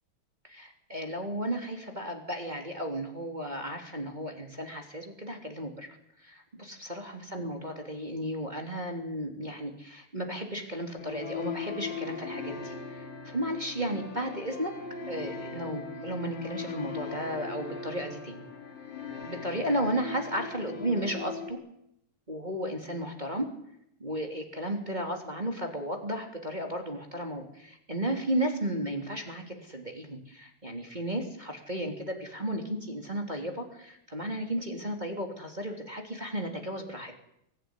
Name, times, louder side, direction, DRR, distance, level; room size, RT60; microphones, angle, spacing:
voice 1, 0.4-5.9 6.2-14.8 15.1-18.4 19.2-21.6 22.3-23.5 24.0-37.1, right 1 dB, 15° right, 2 dB, 2.9 m, -34 dB
sound 1, 11.0-21.5, left 5 dB, 80° left, 5.4 m, -39 dB
24.0 x 16.5 x 9.8 m, 0.77 s
omnidirectional pair, 3.8 m